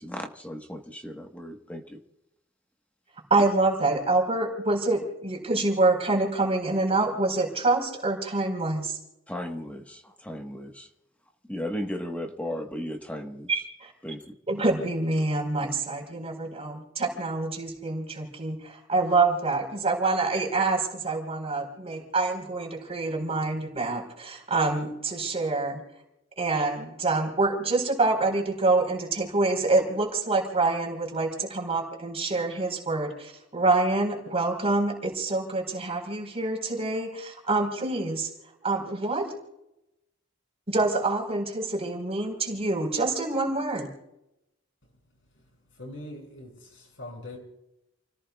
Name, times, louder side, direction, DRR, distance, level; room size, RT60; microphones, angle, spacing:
voice 1, 0.0-2.0 9.3-10.9 11.5-13.5 14.0-14.3, equal, 10° left, 3 dB, 1.4 m, -35 dB
voice 2, 3.3-9.0 13.5-13.9 14.5-25.8 26.4-38.3 38.6-39.3 40.7-43.9, right 3 dB, 35° right, 1 dB, 4.5 m, -26 dB
voice 3, 45.8-47.4, left 1 dB, 90° left, 1 dB, 6.7 m, -42 dB
30.0 x 17.5 x 2.4 m, 0.85 s
head